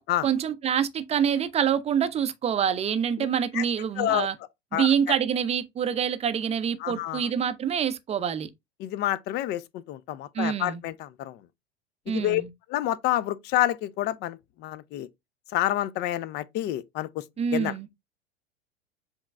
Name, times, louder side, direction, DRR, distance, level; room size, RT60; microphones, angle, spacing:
voice 1, 0.2-4.3 4.7-8.5 10.3-10.8 12.1-12.5 17.4-17.9, right 8 dB, 20° right, 0.6 m, -26 dB
voice 2, 4.0-4.3 4.7-4.9 6.8-7.3 8.8-11.4 12.1-12.4 12.7-15.1 15.5-17.2 17.5-17.7, left 14 dB, 35° left, 0.5 m, -28 dB
7.2 x 3.0 x 2.3 m
figure-of-eight pair, 85°, 32 cm